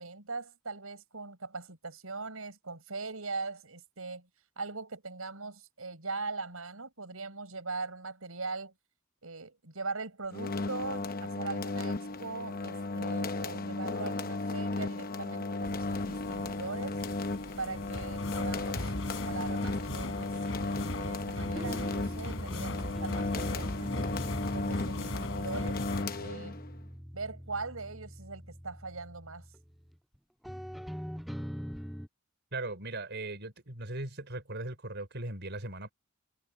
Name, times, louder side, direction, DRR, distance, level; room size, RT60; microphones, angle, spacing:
voice 1, 0.0-4.3 4.6-8.7 9.2-17.0 17.6-20.4 20.6-24.0 24.5-26.6 27.1-29.5, right 3 dB, 80° right, 4.9 m, -41 dB
sound 1, 10.3-26.8, left 3 dB, 45° left, 0.9 m, -35 dB
sound 2, 15.6-26.0, left 1 dB, 65° left, 3.6 m, -40 dB
sound 3, 21.4-30.2 30.4-32.1, equal, ahead, 7.8 m, -42 dB
voice 2, 32.5-35.9, right 2 dB, 55° right, 5.0 m, -38 dB
head